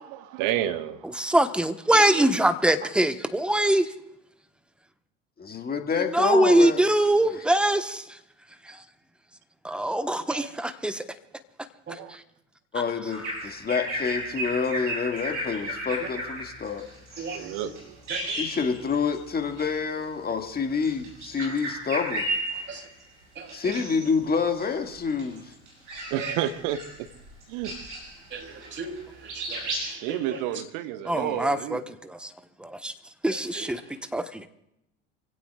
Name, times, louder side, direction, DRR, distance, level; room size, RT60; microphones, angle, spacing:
voice 1, 0.0-1.0 12.0-12.2 17.3-18.3 26.1-27.1 27.5-27.7 30.0-31.9, right 11 dB, 55° right, 1.2 m, -31 dB
voice 2, 1.2-3.9 6.1-8.0 9.6-11.0 31.0-32.3 32.6-32.9 33.2-33.8 34.1-34.5, right 1 dB, 5° right, 1.1 m, -23 dB
voice 3, 1.9-2.3 2.8-2.9 10.3-10.5 11.9-12.0 16.0-16.1 17.2-17.7 18.1-18.4 21.4-21.6 22.7-22.9 23.3-23.8 26.2-26.4 28.3-30.4 33.3-34.1, right 5 dB, 30° right, 3.2 m, -38 dB
voice 4, 5.4-6.8 7.3-7.4 12.7-16.9 18.4-22.3 22.5-22.6 23.5-25.5, left 5 dB, 25° left, 1.9 m, -28 dB
Bird vocalization bird call bird song, 13.1-19.2 19.5-19.7 20.7-23.0 23.5-24.1 24.5-29.0 29.3-29.9, right 1 dB, 75° right, 6.7 m, -34 dB
27.0 x 16.5 x 2.4 m
figure-of-eight pair, 65°, 36 cm